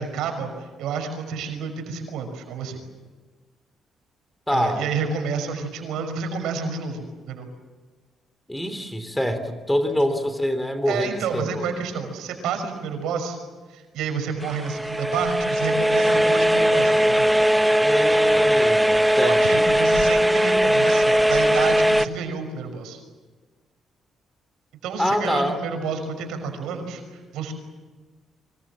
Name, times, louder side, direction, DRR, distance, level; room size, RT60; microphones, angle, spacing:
voice 1, 0.0-2.8 4.5-7.5 10.9-13.4 13.7-17.3 19.2-23.0 24.8-27.0 27.3-27.5, right 5 dB, 90° right, 5 dB, 5.8 m, -29 dB
voice 2, 4.5-4.8 8.5-11.6 17.8-19.6 25.0-25.6, equal, 10° left, 10 dB, 3.2 m, -25 dB
sound 1, 14.4-22.1, equal, 5° right, 1.1 m, -19 dB
29.0 x 25.0 x 7.5 m, 1.3 s
cardioid pair, 90°, 0 cm